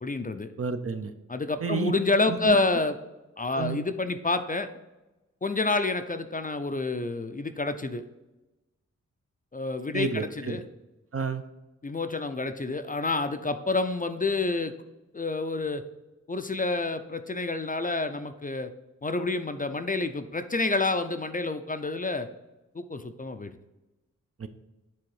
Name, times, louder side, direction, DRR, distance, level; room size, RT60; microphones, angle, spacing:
voice 1, 0.0-0.5 1.3-3.0 3.4-4.7 5.4-8.0 9.5-10.6 11.8-14.7 15.1-15.8 16.3-18.7 19.0-22.3 22.7-23.6, left 3 dB, 30° left, 9 dB, 0.5 m, -28 dB
voice 2, 0.6-1.1 1.6-1.9 2.3-2.6 3.5-3.8 9.9-10.6 11.1-11.4 24.4-24.5, right 5 dB, 50° right, 8 dB, 0.6 m, -30 dB
7.5 x 3.5 x 4.8 m, 1.0 s
cardioid pair, 55°, 30 cm